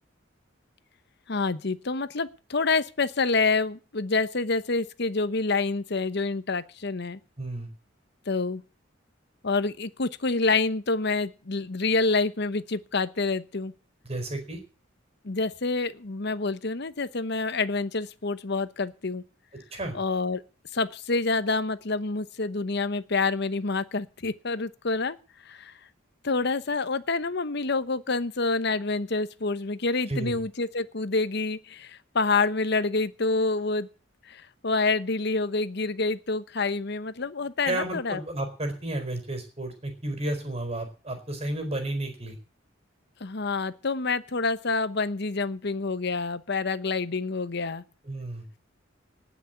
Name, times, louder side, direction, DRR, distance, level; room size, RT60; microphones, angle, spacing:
voice 1, 1.3-7.2 8.3-8.6 9.4-13.7 15.2-19.2 19.9-20.4 20.7-25.2 25.5-25.7 26.2-33.9 34.2-38.2 43.2-47.8, left 3 dB, 60° left, 13 dB, 0.9 m, -27 dB
voice 2, 7.4-7.7 14.0-14.6 19.7-20.0 30.1-30.4 37.6-42.4 48.0-48.5, right 1 dB, 30° right, 6 dB, 4.5 m, -32 dB
18.5 x 6.3 x 8.2 m, 0.35 s
head